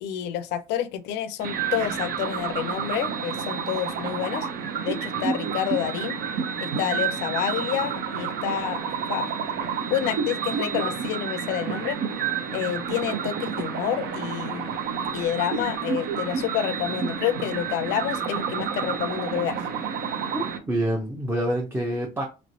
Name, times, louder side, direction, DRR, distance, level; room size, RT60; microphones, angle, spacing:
voice 1, 0.0-4.5 4.8-6.2 6.6-8.8 9.1-9.3 9.9-12.0 12.5-14.8 15.1-19.6, left 10 dB, 85° left, 0.4 m, -29 dB
sound 1, 1.4-20.6, right 6 dB, 65° right, 0.6 m, -30 dB
voice 2, 20.3-22.3, right 1 dB, 15° right, 0.6 m, -27 dB
3.1 x 3.0 x 2.6 m
cardioid pair, 110°, 17 cm